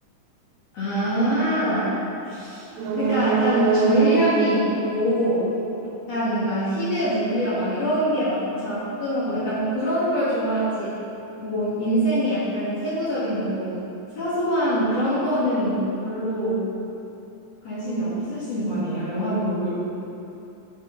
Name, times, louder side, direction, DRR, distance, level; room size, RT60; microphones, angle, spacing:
voice 1, 0.7-1.9 2.3-2.7 3.0-5.5 6.1-11.0 11.4-13.8 14.1-16.6 17.6-19.7, equal, 55° left, -11 dB, 2.7 m, -24 dB
sound 1, 2.7-6.4 6.7-6.8, right 5 dB, 75° right, 1.7 m, -24 dB
12.0 x 5.8 x 3.8 m, 2.8 s
omnidirectional pair, 3.7 m